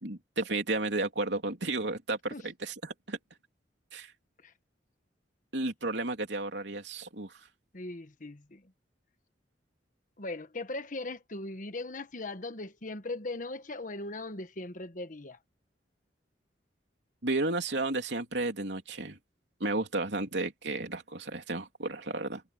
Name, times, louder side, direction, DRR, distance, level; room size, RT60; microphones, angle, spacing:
voice 1, 0.0-3.2 3.9-4.1 5.5-7.3 17.2-19.2 19.6-22.4, right 2 dB, 75° right, 3.4 m, -33 dB
voice 2, 7.7-8.6 10.2-15.4, left 2 dB, 45° left, 1.3 m, -39 dB
head